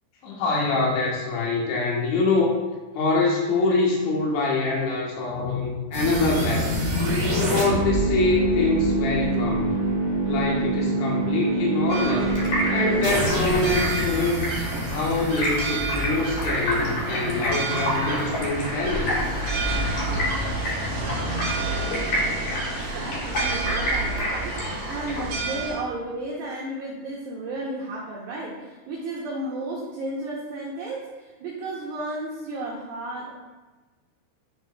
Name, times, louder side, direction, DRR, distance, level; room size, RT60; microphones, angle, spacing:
voice 1, 0.2-2.6 3.0-6.8 7.4-9.8 10.2-12.3 12.7-14.4 14.9-19.2, left 3 dB, 75° left, -2 dB, 3.5 m, -25 dB
sound 1, 5.9-16.9, right 1 dB, 40° right, 2.5 m, -25 dB
Stream, 11.9-25.3, equal, 55° left, 3.7 m, -30 dB
sound 2, 11.9-25.7, right 2 dB, 65° right, 1.7 m, -30 dB
voice 2, 22.9-33.3, right 2 dB, 85° right, -3 dB, 2.0 m, -33 dB
11.0 x 4.4 x 2.2 m, 1.2 s
omnidirectional pair, 5.3 m